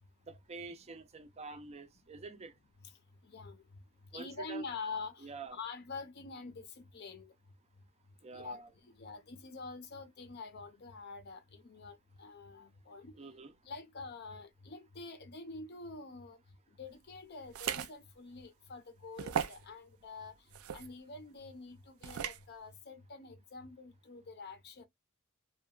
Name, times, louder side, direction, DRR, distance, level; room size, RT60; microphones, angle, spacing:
voice 1, 0.3-2.5 4.1-4.7 5.2-5.6 8.2-8.7 13.1-13.5, right 3 dB, 30° right, 0.5 m, -47 dB
voice 2, 3.2-3.6 4.1-7.3 8.3-13.2 13.6-16.4 16.7-20.4 20.7-24.9, left 4 dB, 50° left, 0.5 m, -46 dB
sound 1, 17.5-17.9 18.4-18.5 19.2-19.6 20.5-20.9 22.0-22.4, right 8 dB, 90° right, 0.4 m, -36 dB
2.8 x 2.2 x 2.3 m
head